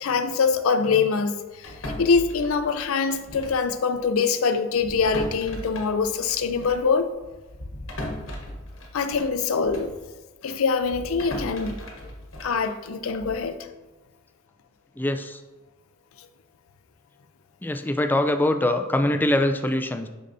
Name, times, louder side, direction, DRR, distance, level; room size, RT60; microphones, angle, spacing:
voice 1, 0.0-7.1 8.9-9.9 10.4-11.8 12.4-13.6, left 5 dB, 85° left, 0.5 m, -24 dB
sound 1, 1.6-3.7 3.9-4.1 4.7-10.0 10.4-13.5, left 1 dB, 70° left, 1.1 m, -38 dB
voice 2, 15.0-15.4 17.6-20.1, left 1 dB, 10° left, 0.3 m, -23 dB
6.5 x 5.5 x 2.6 m
head